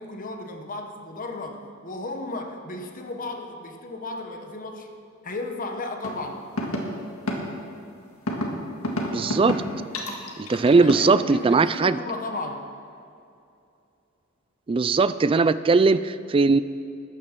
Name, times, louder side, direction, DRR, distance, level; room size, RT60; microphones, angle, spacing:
voice 1, 0.0-4.9 5.2-6.4 10.7-12.7, left 2 dB, 40° left, 4 dB, 1.1 m, -34 dB
sound 1, 6.0-6.1 6.6-6.8 7.3-7.4 8.3-8.5 8.8-9.6 9.9-11.1, left 1 dB, 85° left, 1.9 m, -27 dB
voice 2, 9.1-9.6 10.4-12.0 14.7-16.6, right 4 dB, 25° right, 14 dB, 0.3 m, -19 dB
14.0 x 9.8 x 6.0 m, 2.6 s
head